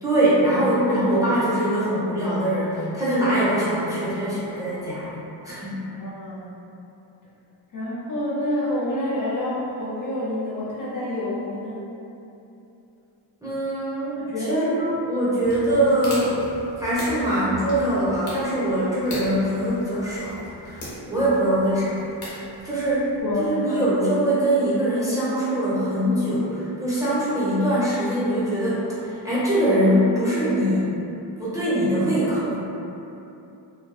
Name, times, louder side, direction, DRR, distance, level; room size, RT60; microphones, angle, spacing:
voice 1, 0.0-5.2 5.4-5.8 13.4-16.4 16.8-22.0 22.6-23.1 23.5-30.9 31.4-32.6, right 1 dB, 5° right, -11 dB, 0.8 m, -23 dB
voice 2, 6.0-6.5 7.7-11.8 14.1-14.8 15.7-15.8 23.2-23.9, left 1 dB, 40° left, -8 dB, 0.7 m, -28 dB
sound 1, 15.4-23.2, left 1 dB, 90° left, 0.8 m, -39 dB
2.5 x 2.2 x 2.3 m, 2.8 s
cardioid pair, 70°, 50 cm